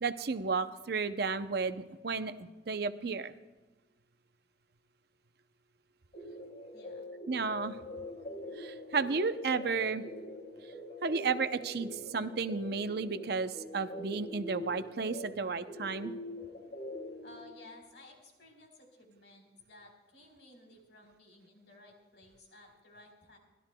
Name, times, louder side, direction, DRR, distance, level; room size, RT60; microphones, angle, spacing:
voice 1, 0.0-3.3 7.3-7.8 8.6-10.0 11.0-16.1, right 4 dB, 60° right, 10 dB, 0.6 m, -33 dB
sound 1, 6.1-17.4, left 1 dB, 45° left, 3.0 m, -44 dB
voice 2, 6.7-7.1 17.2-23.4, left 2 dB, 75° left, 1 dB, 4.0 m, -56 dB
29.5 x 12.5 x 2.2 m, 1.2 s
head